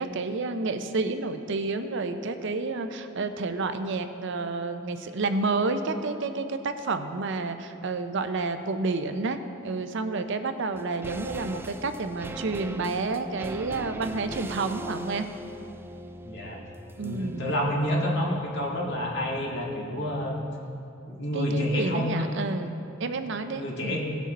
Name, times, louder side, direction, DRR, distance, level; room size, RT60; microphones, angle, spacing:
voice 1, 0.0-15.3 17.0-17.6 21.3-24.0, right 3 dB, 65° right, 8 dB, 0.6 m, -30 dB
sound 1, 10.7-20.1 20.4-20.5, right 1 dB, 10° right, 0.3 m, -41 dB
voice 2, 16.2-16.6 17.0-20.4 21.1-22.3 23.5-24.0, equal, 60° left, -3 dB, 2.1 m, -28 dB
17.5 x 6.3 x 4.1 m, 2.6 s
head